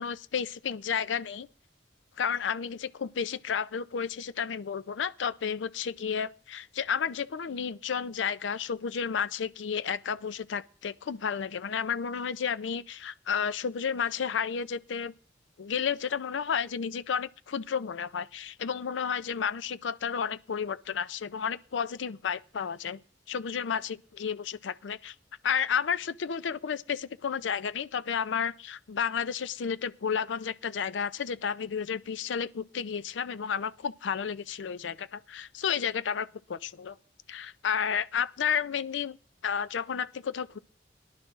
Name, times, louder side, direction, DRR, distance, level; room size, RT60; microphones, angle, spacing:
voice 1, 0.0-1.5 2.2-15.1 15.6-23.0 23.3-25.1 25.4-37.0 37.3-39.2 39.4-40.6, left 7 dB, 85° left, 0.5 m, -32 dB
22.0 x 11.5 x 2.5 m
head